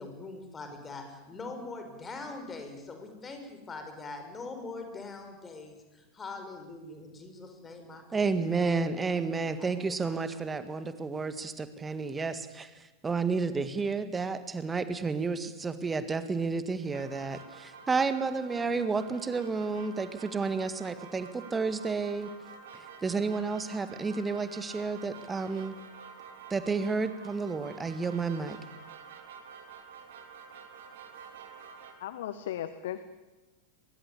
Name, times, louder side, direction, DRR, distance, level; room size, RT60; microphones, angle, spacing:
voice 1, 0.0-10.1, left 3 dB, 20° left, 6 dB, 5.6 m, -43 dB
voice 2, 8.1-22.3 22.7-25.8 26.5-28.6, right 4 dB, 15° right, 11 dB, 1.8 m, -31 dB
sound 1, 16.9-31.9, right 6 dB, 55° right, 3.8 m, -49 dB
voice 3, 32.0-33.0, left 11 dB, 55° left, 12 dB, 1.3 m, -36 dB
23.0 x 23.0 x 8.7 m, 1.1 s
figure-of-eight pair, 90°, 0 cm